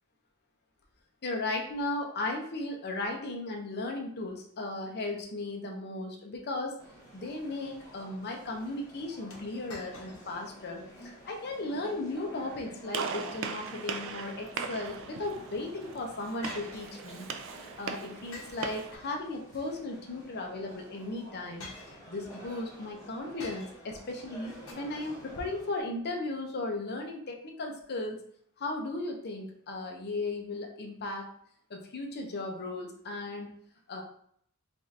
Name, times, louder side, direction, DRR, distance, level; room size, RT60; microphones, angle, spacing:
voice 1, 1.2-6.8 7.1-17.3 17.6-21.7 22.1-28.2 28.6-31.3 31.7-33.5 33.9-34.0, left 2 dB, 50° left, 1 dB, 0.7 m, -36 dB
sound 1, 6.8-25.8, right 1 dB, 15° left, 1.1 m, -51 dB
sound 2, 9.3-10.5 10.9-11.0 11.6-11.9 13.8-14.7 16.4-17.4 18.3-19.5 20.6-20.8 21.6-22.5 23.4-24.0 24.7-24.8, left 2 dB, 75° left, 1.0 m, -48 dB
Gunshot gunfire, 12.9-19.0, right 6 dB, 65° right, 0.4 m, -39 dB
4.8 x 2.5 x 2.7 m, 0.64 s
head